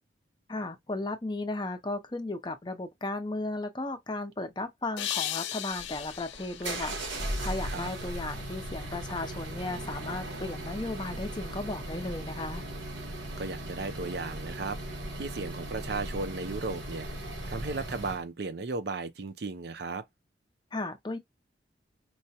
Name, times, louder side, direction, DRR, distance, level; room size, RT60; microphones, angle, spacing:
voice 1, 0.5-12.6 20.7-21.2, left 2 dB, 25° left, 0.5 m, -35 dB
sound 1, 5.0-8.1, left 12 dB, 80° left, 0.5 m, -37 dB
sound 2, 5.7-18.2, right 1 dB, 90° right, 1.1 m, -38 dB
voice 2, 13.4-17.1 17.5-20.0, right 3 dB, 65° right, 0.5 m, -35 dB
4.6 x 2.1 x 2.8 m
head